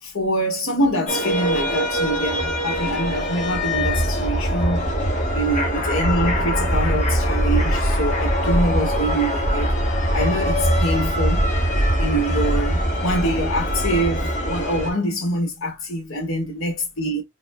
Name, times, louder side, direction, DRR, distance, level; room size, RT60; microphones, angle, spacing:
voice 1, 0.0-4.9 5.3-9.7 10.1-11.5 12.0-17.2, right 1 dB, 70° left, 1.8 m, -25 dB
sound 1, 1.1-14.9, equal, 35° left, 1.6 m, -22 dB
4.3 x 4.1 x 2.2 m
head